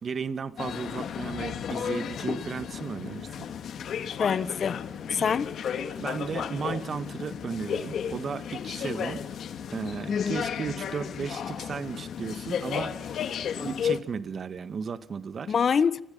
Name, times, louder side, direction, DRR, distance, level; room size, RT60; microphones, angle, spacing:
voice 1, 0.0-3.5 5.2-5.4 6.0-9.3 9.7-13.2 13.6-15.5, right 6 dB, 45° right, 1.8 m, -35 dB
London Underground- train at Finchley Road, 0.6-14.0, left 8 dB, 65° left, 2.1 m, -33 dB
voice 2, 4.2-4.8 5.1-5.5 10.1-10.4 15.5-16.0, left 6 dB, 50° left, 1.3 m, -25 dB
30.0 x 25.0 x 5.6 m
cardioid pair, 90°, 0 cm